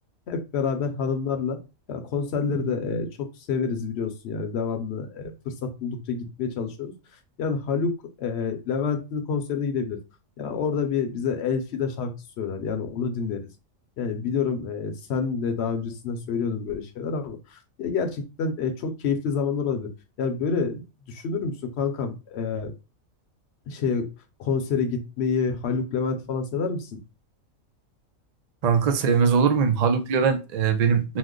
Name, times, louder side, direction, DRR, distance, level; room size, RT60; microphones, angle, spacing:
voice 1, 0.3-1.6 1.9-6.9 7.4-7.9 8.2-10.0 10.4-13.4 14.0-19.9 20.2-22.7 23.7-24.1 24.4-27.0, left 5 dB, 60° left, 0.8 m, -28 dB
voice 2, 28.6-31.2, right 6 dB, 85° right, 0.3 m, -21 dB
3.0 x 2.1 x 3.7 m
omnidirectional pair, 1.4 m